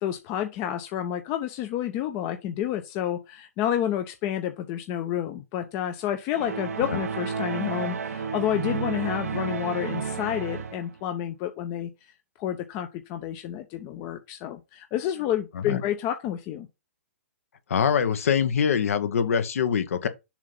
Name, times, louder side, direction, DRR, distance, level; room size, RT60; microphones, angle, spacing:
voice 1, 0.0-11.9 12.4-16.7, left 11 dB, 35° left, 0.7 m, -29 dB
sound 1, 6.3-11.0, right 6 dB, 75° right, 0.9 m, -31 dB
voice 2, 17.7-20.1, left 7 dB, 65° left, 0.9 m, -24 dB
7.2 x 2.7 x 5.3 m
hypercardioid pair, 125°, 8 cm